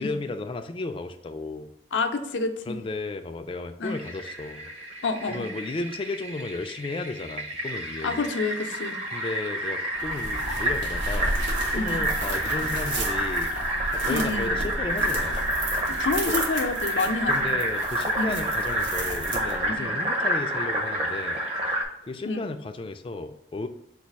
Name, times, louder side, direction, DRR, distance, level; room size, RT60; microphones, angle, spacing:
voice 1, 0.0-1.7 2.7-4.7 5.3-8.3 9.1-11.4 11.7-13.5 13.9-15.4 16.3-16.4 17.3-21.4 22.0-23.7, left 2 dB, 30° left, 8 dB, 0.3 m, -34 dB
voice 2, 1.9-2.8 3.8-3.9 5.0-5.5 8.0-9.0 11.7-12.0 14.1-14.6 15.9-17.5 18.2-18.4 19.6-19.9 22.3-22.5, left 3 dB, 90° left, 6 dB, 0.5 m, -28 dB
Fill (with liquid), 3.8-21.8, right 1 dB, 35° right, 0.7 m, -29 dB
sound 1, 9.9-19.8, right 1 dB, 85° right, 1.0 m, -33 dB
4.1 x 2.4 x 4.5 m, 0.81 s
head